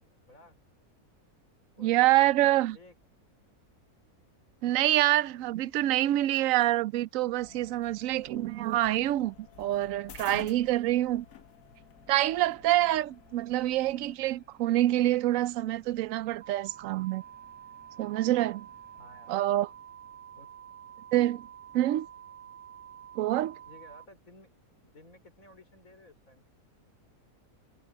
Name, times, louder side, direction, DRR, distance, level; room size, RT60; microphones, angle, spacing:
voice 1, 1.8-2.8 4.6-11.3 12.1-17.2 18.0-18.7 19.3-19.7 21.1-21.4 21.7-22.1 23.2-23.5, right 15 dB, 70° right, 0.9 m, -26 dB
voice 2, 2.6-2.9 19.0-19.3 20.3-20.5 23.7-24.5 24.8-26.5, left 2 dB, 60° left, 5.1 m, -55 dB
sound 1, 7.4-14.2, left 8 dB, 80° left, 1.8 m, -52 dB
sound 2, 7.7-20.5, equal, 5° right, 6.6 m, -65 dB
sound 3, 16.4-24.1, right 9 dB, 40° right, 0.9 m, -49 dB
omnidirectional pair, 1.6 m